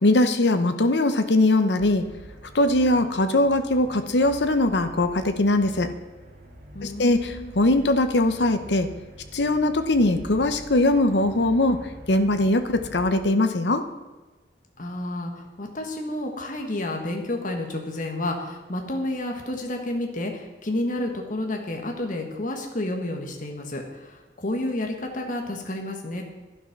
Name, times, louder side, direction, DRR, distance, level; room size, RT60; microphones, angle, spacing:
voice 1, 0.0-2.0 2.5-5.9 6.8-8.9 9.3-13.8, left 2 dB, 75° left, 8 dB, 0.9 m, -21 dB
sound 1, 1.8-13.0, right 1 dB, 55° right, 2.9 m, -45 dB
voice 2, 6.7-7.5 14.8-26.2, left 1 dB, 50° left, 2 dB, 1.6 m, -30 dB
12.0 x 11.0 x 6.0 m, 1.2 s
head